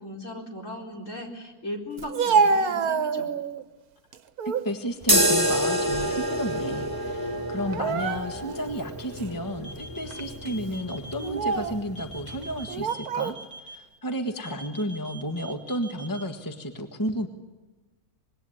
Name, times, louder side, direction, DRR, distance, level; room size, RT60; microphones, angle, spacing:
voice 1, 0.0-3.3, left 1 dB, 50° left, 1 dB, 4.7 m, -37 dB
Speech, 2.0-3.6 4.1-4.7 5.1-6.4 6.6-6.8 7.6-8.6 9.2-9.3 10.1-10.3 11.1-11.8 12.7-13.4, right 5 dB, 70° right, 1.5 m, -27 dB
voice 2, 4.6-17.3, equal, 15° left, 5 dB, 1.6 m, -32 dB
sound 1, 5.0-12.8, right 1 dB, 15° right, 3.4 m, -28 dB
sound 2, 9.6-11.3 12.0-13.8 14.4-16.2, right 1 dB, 85° left, 3.5 m, -43 dB
26.0 x 21.5 x 9.8 m, 1.2 s
omnidirectional pair, 1.6 m